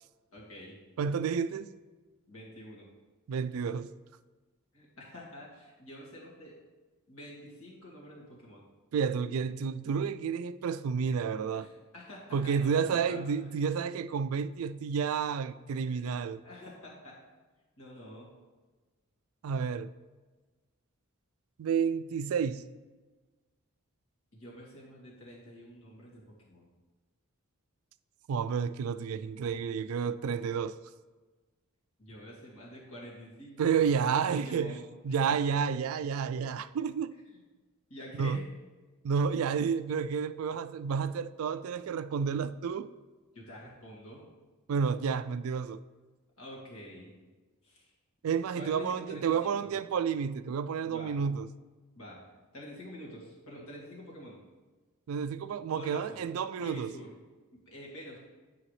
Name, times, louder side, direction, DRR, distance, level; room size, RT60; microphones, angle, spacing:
voice 1, 0.3-0.8 2.3-2.9 4.7-6.6 7.1-8.6 11.5-13.5 15.9-16.0 16.4-17.2 17.8-18.3 24.3-26.7 32.0-34.8 35.2-35.4 37.9-38.4 43.3-44.3 46.4-47.2 47.6-47.9 48.5-49.7 50.9-51.2 51.9-52.2 52.5-54.4 55.7-56.3 56.6-57.1 57.5-58.2, equal, 70° left, 2.3 m, -47 dB
voice 2, 1.0-1.7 3.3-3.9 8.9-11.7 12.3-16.4 19.4-19.9 21.6-22.6 28.3-30.8 33.6-34.8 35.0-37.2 38.1-38.5 39.0-42.9 44.7-45.8 48.2-51.5 55.1-56.9, right 6 dB, 75° right, 0.3 m, -30 dB
10.0 x 4.9 x 3.3 m
head